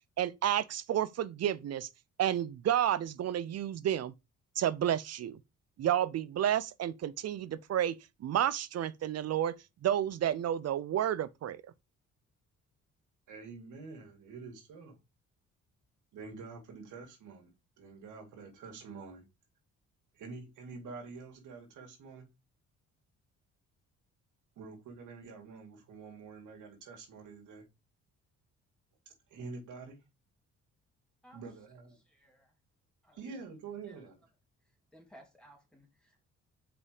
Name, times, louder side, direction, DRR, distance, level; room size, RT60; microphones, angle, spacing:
voice 1, 0.2-1.9 2.2-4.1 4.6-5.4 5.8-9.6 9.8-11.6, right 11 dB, 55° right, 0.6 m, -31 dB
voice 2, 13.3-15.0 16.1-19.2 20.1-22.3 24.6-27.7 29.3-30.0 31.3-32.0 33.1-34.2, right 4 dB, 80° right, 2.4 m, -47 dB
voice 3, 32.0-32.6 33.0-33.4 33.8-34.0 34.9-36.3, right 1 dB, 5° left, 2.9 m, -58 dB
5.0 x 5.0 x 5.0 m
cardioid pair, 90°, 30 cm